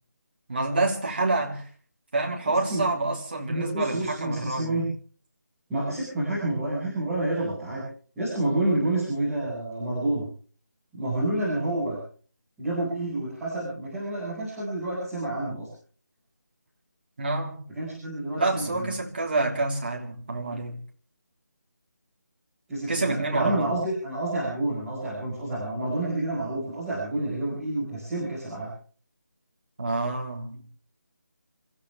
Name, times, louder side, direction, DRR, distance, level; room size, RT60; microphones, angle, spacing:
voice 1, 0.5-1.7 2.1-4.8 17.2-17.6 18.4-20.8 22.9-23.7 29.8-30.6, right 2 dB, 35° right, 3.5 m, -27 dB
voice 2, 3.5-4.9 5.7-7.8 8.2-10.2 10.9-12.0 12.6-15.7 17.7-18.9 22.7-28.7, right 1 dB, 5° right, 5.4 m, -29 dB
27.5 x 15.0 x 3.4 m
figure-of-eight pair, 180°, 10 cm